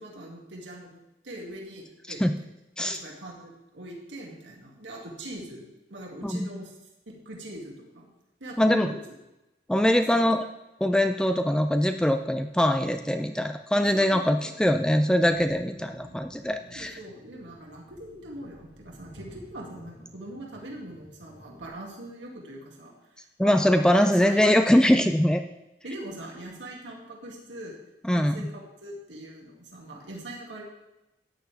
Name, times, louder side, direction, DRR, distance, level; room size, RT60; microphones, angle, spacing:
voice 1, 0.0-2.2 2.8-6.8 7.1-8.1 8.4-9.0 9.8-10.2 13.8-14.5 16.7-23.6 24.0-24.5 25.8-27.8 28.1-30.6, right 1 dB, 85° right, -1 dB, 2.2 m, -42 dB
voice 2, 8.6-8.9 9.7-10.4 10.8-17.0 23.4-25.4 28.1-28.5, equal, 5° left, 7 dB, 0.4 m, -22 dB
sound 1, 14.9-21.7, equal, 70° left, 4.6 m, -51 dB
13.5 x 9.3 x 3.4 m, 0.95 s
head